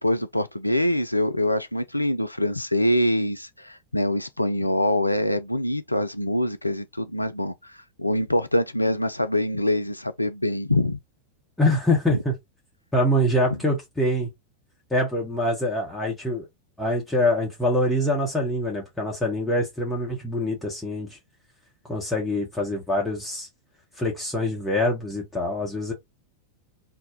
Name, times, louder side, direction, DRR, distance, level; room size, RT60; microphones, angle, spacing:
voice 1, 0.0-11.0 12.1-12.2, left 1 dB, 85° left, 0.3 m, -24 dB
voice 2, 11.6-12.3 12.9-14.3 14.9-16.5 16.8-21.2 21.9-23.5 24.0-25.9, left 1 dB, 10° left, 1.0 m, -24 dB
2.5 x 2.2 x 3.6 m
figure-of-eight pair, 90°, 0 cm